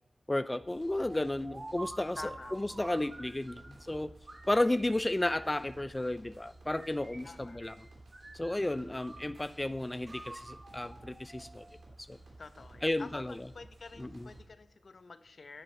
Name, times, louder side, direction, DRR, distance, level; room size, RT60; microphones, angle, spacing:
voice 1, 0.3-4.1 4.5-7.7 8.3-11.7 12.1-12.2 12.8-13.3 14.0-14.3, left 1 dB, 25° left, 13 dB, 0.4 m, -33 dB
sound 1, 0.5-14.4, right 2 dB, 85° right, 3.1 m, -55 dB
sound 2, 1.1-3.8 4.3-6.1 6.7-7.8 8.1-9.6 10.1-11.8, right 2 dB, 45° right, 1.2 m, -49 dB
voice 2, 2.2-2.8 7.2-7.6 8.7-8.9 12.4-15.6, left 4 dB, 75° left, 12 dB, 0.6 m, -49 dB
10.0 x 10.0 x 4.4 m, 0.84 s
wide cardioid pair, 65°, 0 cm